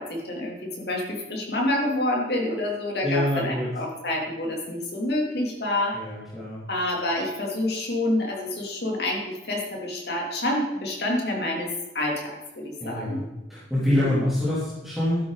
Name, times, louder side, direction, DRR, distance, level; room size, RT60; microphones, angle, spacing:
voice 1, 0.0-6.0 6.7-11.7 11.9-13.2 13.9-14.2, left 1 dB, 70° left, -1 dB, 3.3 m, -28 dB
voice 2, 3.0-3.7 5.9-6.6 12.8-13.2 13.5-15.3, left 1 dB, ahead, -10 dB, 3.4 m, -26 dB
13.0 x 10.5 x 4.2 m, 1.0 s
head